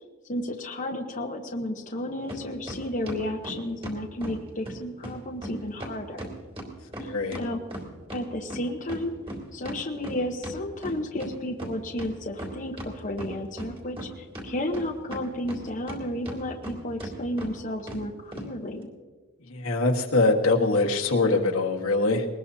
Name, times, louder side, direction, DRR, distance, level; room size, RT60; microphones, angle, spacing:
voice 1, 0.3-6.3 7.0-7.6 8.1-9.1 9.5-18.9, left 1 dB, 35° left, 2 dB, 1.0 m, -32 dB
sound 1, 2.3-2.4 2.7-4.4 4.6-4.7 5.0-5.2 5.4-5.5 5.8-8.2 8.5-11.3 11.6-11.7 12.0-12.9 13.2-14.1 14.3-16.0 16.2-16.7 17.0-17.1 17.4-17.5 17.9-18.0 18.3-18.5, right 1 dB, 25° right, 3.0 m, -37 dB
voice 2, 7.0-7.4 19.5-22.3, left 3 dB, 75° left, 2 dB, 1.6 m, -23 dB
21.5 x 19.5 x 2.8 m, 1.4 s
head